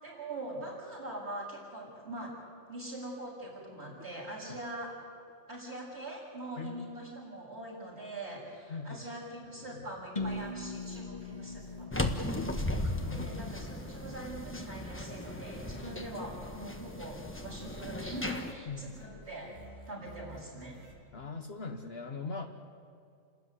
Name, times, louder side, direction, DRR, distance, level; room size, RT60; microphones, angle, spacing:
voice 1, 0.0-2.3 2.7-4.9 5.5-12.5 13.1-19.6 19.9-20.8, right 1 dB, 55° right, -4 dB, 7.2 m, -43 dB
voice 2, 8.7-9.1 9.5-10.0 12.6-12.7 13.0-13.5 18.7-18.9 21.1-22.5, left 4 dB, 55° left, 4 dB, 1.3 m, -41 dB
sound 1, 10.2-14.0, left 2 dB, 35° left, 1.4 m, -41 dB
sound 2, 10.2-20.9, right 1 dB, 80° right, 3.8 m, -54 dB
sound 3, 11.9-18.5, left 1 dB, 10° left, 1.2 m, -36 dB
29.5 x 13.0 x 9.8 m, 2.4 s
omnidirectional pair, 1.3 m